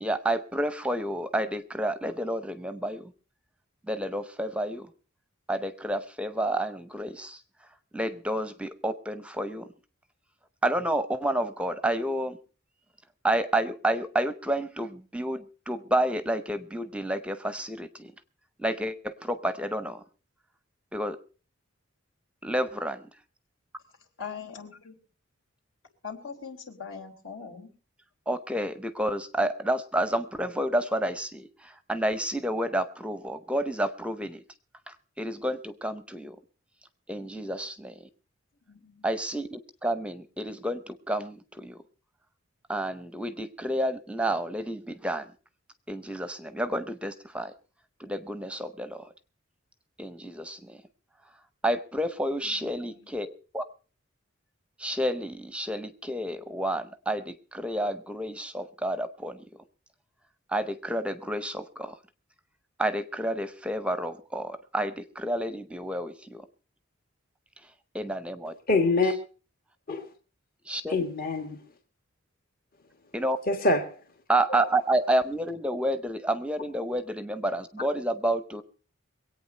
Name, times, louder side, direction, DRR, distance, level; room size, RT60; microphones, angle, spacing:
voice 1, 0.0-3.1 3.9-4.9 5.5-7.4 7.9-9.7 10.6-12.4 13.2-18.1 18.6-20.0 20.9-21.2 22.4-23.1 28.3-34.4 34.9-36.4 37.1-38.1 39.0-41.8 42.7-45.3 45.9-47.5 48.0-49.1 50.0-50.8 51.6-53.3 53.5-53.6 54.8-59.4 60.5-62.0 62.8-66.5 67.9-68.5 70.7-71.0 73.1-73.4 74.3-78.6, right 1 dB, 5° right, 12 dB, 0.7 m, -30 dB
voice 2, 24.2-25.0 26.0-27.7 38.7-39.1 52.4-53.1, left 6 dB, 75° left, 2 dB, 3.6 m, -42 dB
voice 3, 68.7-69.1 69.9-70.1 70.9-71.6 73.5-74.0, left 2 dB, 45° left, 4 dB, 1.6 m, -25 dB
23.0 x 8.8 x 5.4 m, 0.37 s
head